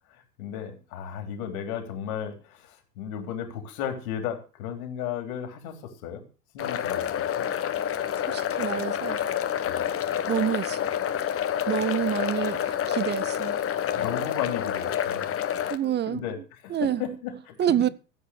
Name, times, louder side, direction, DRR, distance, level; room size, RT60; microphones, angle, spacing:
voice 1, 0.4-6.2 6.5-7.5 9.7-9.8 13.9-15.3 15.8-16.4 16.6-17.8, left 8 dB, 60° left, 3.6 m, -34 dB
sound 1, 6.6-15.8, left 9 dB, 30° left, 1.4 m, -28 dB
voice 2, 8.3-9.2 10.3-10.8 11.7-13.6 15.7-16.2 16.7-17.0 17.6-17.9, right 10 dB, 20° right, 0.6 m, -27 dB
15.0 x 8.2 x 6.5 m
figure-of-eight pair, 75°, 48 cm